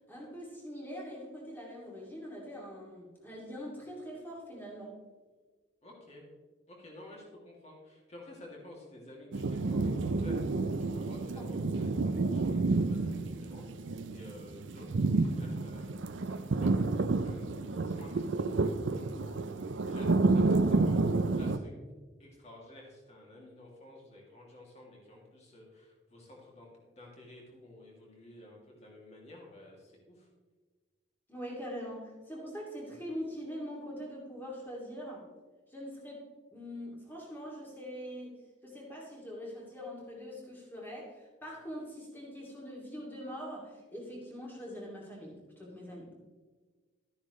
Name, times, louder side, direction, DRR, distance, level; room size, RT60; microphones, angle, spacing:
voice 1, 0.1-5.0 11.4-11.5 31.3-35.3 35.7-46.1, equal, 10° left, -3 dB, 2.7 m, -43 dB
voice 2, 5.8-6.2 6.7-21.7 22.2-30.3, left 1 dB, 35° left, -2 dB, 2.6 m, -52 dB
sound 1, 9.3-21.6, right 3 dB, 75° right, 0.5 m, -30 dB
13.0 x 10.0 x 3.2 m, 1.4 s
head